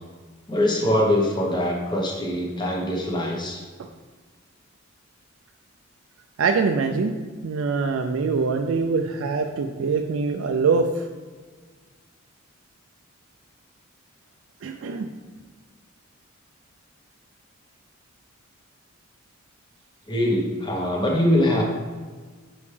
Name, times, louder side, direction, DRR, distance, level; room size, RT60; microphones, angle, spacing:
voice 1, 0.5-3.6 20.1-21.6, left 1 dB, 20° left, -1 dB, 1.0 m, -23 dB
voice 2, 6.4-7.1 7.4-11.1 14.6-15.1, right 4 dB, 80° right, 4 dB, 0.4 m, -24 dB
5.6 x 5.1 x 3.3 m, 1.5 s
head